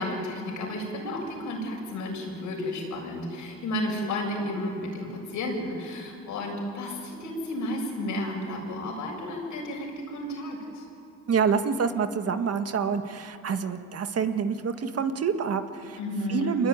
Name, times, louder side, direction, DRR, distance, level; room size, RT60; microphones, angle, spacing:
voice 1, 0.0-10.9 16.0-16.6, left 1 dB, 80° left, 0 dB, 7.6 m, -32 dB
voice 2, 11.3-16.0 16.3-16.7, right 6 dB, 55° right, 8 dB, 1.7 m, -27 dB
25.5 x 21.5 x 9.7 m, 2.6 s
cardioid pair, 90°, 30 cm